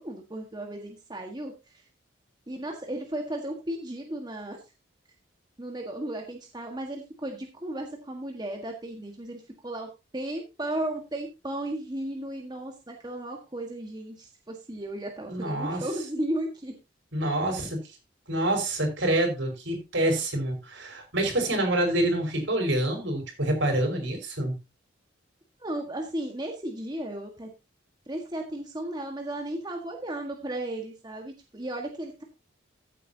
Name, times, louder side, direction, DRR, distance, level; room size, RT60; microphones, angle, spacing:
voice 1, 0.0-1.8 2.5-4.6 5.6-16.7 25.6-27.5 28.1-32.2, right 1 dB, 20° right, 2 dB, 1.6 m, -35 dB
voice 2, 15.3-15.9 17.1-17.8 18.3-24.5, right 1 dB, 75° right, 3 dB, 5.2 m, -27 dB
14.5 x 8.5 x 2.9 m, 0.26 s
head